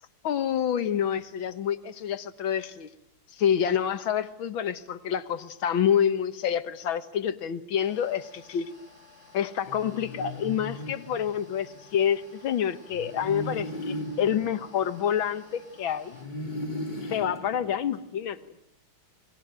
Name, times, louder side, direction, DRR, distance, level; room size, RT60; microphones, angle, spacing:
voice 1, 0.2-2.9 3.3-8.7 9.3-16.2 17.0-18.4, left 9 dB, 75° left, 11 dB, 2.0 m, -28 dB
sound 1, 7.8-16.3, left 3 dB, 35° right, 7.6 m, -54 dB
sound 2, 9.6-11.8 12.9-15.6 16.1-18.4, left 1 dB, 20° left, 3.0 m, -38 dB
29.5 x 22.5 x 8.9 m, 0.80 s
omnidirectional pair, 2.3 m